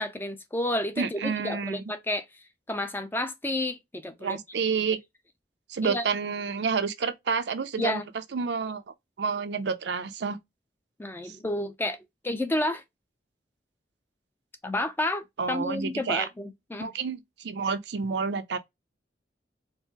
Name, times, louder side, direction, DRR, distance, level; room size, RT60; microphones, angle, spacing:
voice 1, 0.0-2.3 2.7-4.4 5.8-6.0 7.8-8.0 11.0-12.0 12.2-12.8 14.6-16.9, left 1 dB, 10° left, 0.4 m, -30 dB
voice 2, 1.0-1.8 4.2-5.0 5.7-8.0 8.3-8.8 9.2-10.4 11.2-11.3 15.4-16.3 16.8-18.6, right 5 dB, 70° right, 0.5 m, -29 dB
4.4 x 2.0 x 2.8 m
head